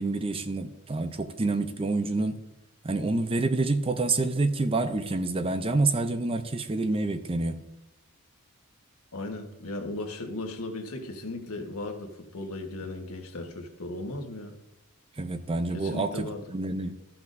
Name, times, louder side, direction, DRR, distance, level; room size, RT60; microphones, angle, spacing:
voice 1, 0.0-2.4 2.8-7.6 15.2-17.0, right 2 dB, 25° right, 9 dB, 0.5 m, -28 dB
voice 2, 9.1-14.6 15.7-16.4, left 2 dB, 90° left, 3 dB, 1.4 m, -36 dB
14.0 x 5.9 x 2.6 m, 0.90 s
head